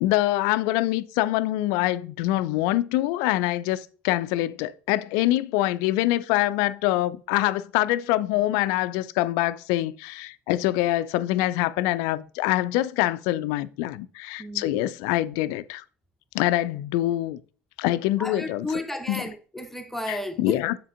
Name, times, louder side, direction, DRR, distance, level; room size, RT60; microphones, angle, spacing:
voice 1, 0.0-15.8 16.3-17.4 17.8-18.7 19.1-19.2 20.1-20.8, left 15 dB, 55° left, 0.4 m, -25 dB
voice 2, 14.4-14.9 18.2-20.6, left 1 dB, 5° left, 0.8 m, -33 dB
7.5 x 7.4 x 2.5 m
figure-of-eight pair, 65°, 7 cm